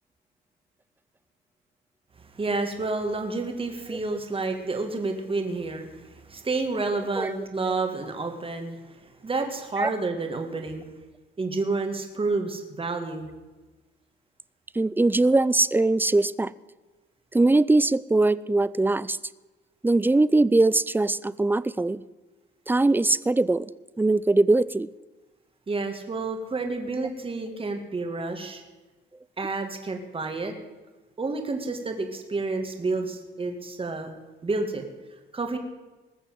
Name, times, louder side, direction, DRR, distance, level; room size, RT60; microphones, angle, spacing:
voice 1, 2.2-10.9 11.4-13.3 25.7-28.6 29.4-30.5 31.2-34.1 34.4-34.8 35.3-35.6, right 3 dB, 25° right, 4 dB, 2.2 m, -30 dB
voice 2, 14.7-16.5 17.3-19.2 19.8-22.0 22.7-23.7 24.0-24.9, right 2 dB, 10° right, 19 dB, 0.4 m, -21 dB
20.0 x 6.8 x 7.8 m, 1.2 s
cardioid pair, 90°, 20 cm